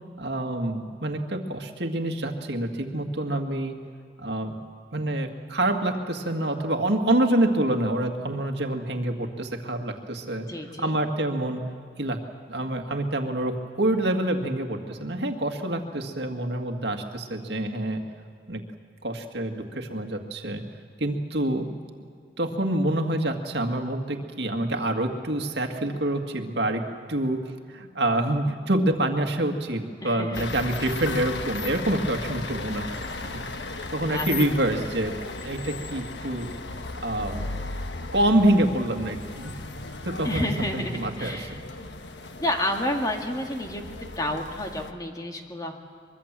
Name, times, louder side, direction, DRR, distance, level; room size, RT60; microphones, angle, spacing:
voice 1, 0.2-3.8 4.2-4.6 4.9-10.5 10.8-11.6 12.0-12.2 12.5-18.0 18.5-18.6 19.0-20.6 21.0-21.7 22.4-27.4 27.7-33.4 33.9-35.1 35.4-36.5 37.0-37.5 38.1-39.5 40.1-41.6, right 1 dB, 75° right, 4 dB, 2.0 m, -26 dB
voice 2, 10.5-11.0 30.0-30.4 30.8-30.9 34.1-34.3 40.2-41.9 42.4-45.8, left 1 dB, 20° left, 3 dB, 2.0 m, -30 dB
sound 1, 30.3-44.9, left 3 dB, 90° left, 1.3 m, -36 dB
24.0 x 23.0 x 7.5 m, 2.2 s
head